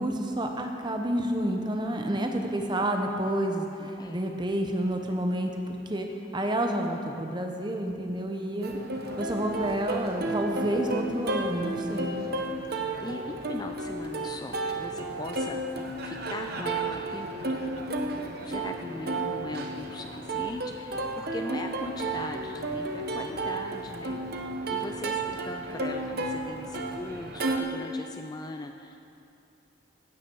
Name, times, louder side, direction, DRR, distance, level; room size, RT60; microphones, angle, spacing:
voice 1, 0.0-6.1 6.3-8.7 9.2-12.2, right 1 dB, 20° right, 3 dB, 0.8 m, -29 dB
voice 2, 3.8-4.2 12.7-15.8 16.0-17.8 18.4-29.0, left 2 dB, 20° left, 5 dB, 0.3 m, -40 dB
Plucked string instrument, 8.6-27.6, right 2 dB, 50° right, 0.9 m, -32 dB
15.5 x 9.2 x 4.6 m, 2.8 s
head